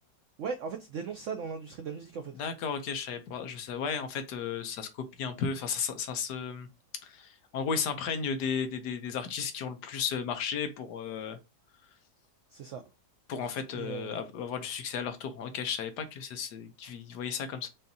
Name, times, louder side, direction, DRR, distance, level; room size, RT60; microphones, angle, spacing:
voice 1, 0.4-2.3 12.5-12.8 13.7-14.2, right 5 dB, 90° right, 0.6 m, -37 dB
voice 2, 2.4-4.9 5.2-6.7 7.0-11.4 13.3-17.7, left 6 dB, 70° left, 1.2 m, -34 dB
5.5 x 2.6 x 2.6 m
omnidirectional pair, 2.0 m